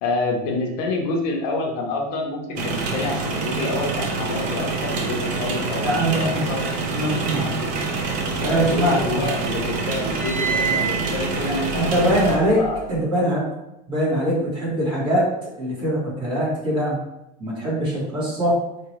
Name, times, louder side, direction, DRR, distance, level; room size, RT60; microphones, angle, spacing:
voice 1, 0.0-6.8 8.4-12.0 12.3-12.8, left 2 dB, 75° left, 1 dB, 1.0 m, -28 dB
sound 1, 2.6-12.4, right 3 dB, 40° right, 0.7 m, -26 dB
voice 2, 5.8-6.5 6.9-7.5 8.4-9.3 11.5-12.6 12.9-13.4 13.9-15.3 15.6-17.0 17.4-18.6, right 1 dB, 25° right, -6 dB, 1.6 m, -22 dB
sound 2, 8.1-9.2 9.5-12.9, right 5 dB, 15° left, 1.2 m, -29 dB
4.9 x 3.2 x 3.1 m, 0.89 s
cardioid pair, 170°, 21 cm